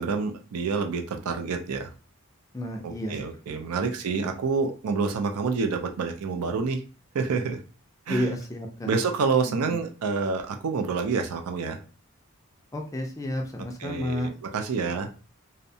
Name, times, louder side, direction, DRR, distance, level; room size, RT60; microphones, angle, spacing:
voice 1, 0.0-1.9 2.8-6.8 7.1-7.6 8.1-8.3 8.9-11.8 13.8-15.1, right 4 dB, 85° right, 5 dB, 0.4 m, -28 dB
voice 2, 2.5-3.2 3.5-3.6 8.1-9.0 9.5-9.8 12.7-14.3, equal, 15° left, 2 dB, 0.3 m, -31 dB
2.6 x 2.1 x 2.7 m, 0.36 s
head